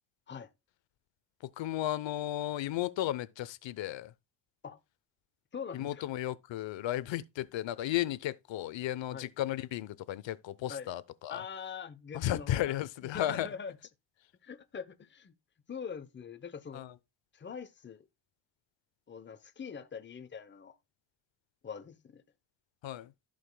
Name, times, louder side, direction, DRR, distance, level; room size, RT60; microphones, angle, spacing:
voice 1, 1.4-4.1 5.7-11.4 12.1-13.5 16.7-17.0 22.8-23.1, left 13 dB, 85° left, 0.8 m, -34 dB
voice 2, 5.5-6.0 9.1-9.3 10.7-10.9 11.3-12.7 13.0-13.7 14.4-15.3 15.7-16.8 17.3-18.0 19.1-20.7 21.6-22.2, left 6 dB, 25° left, 0.8 m, -43 dB
15.0 x 5.1 x 2.2 m
cardioid pair, 120°, 44 cm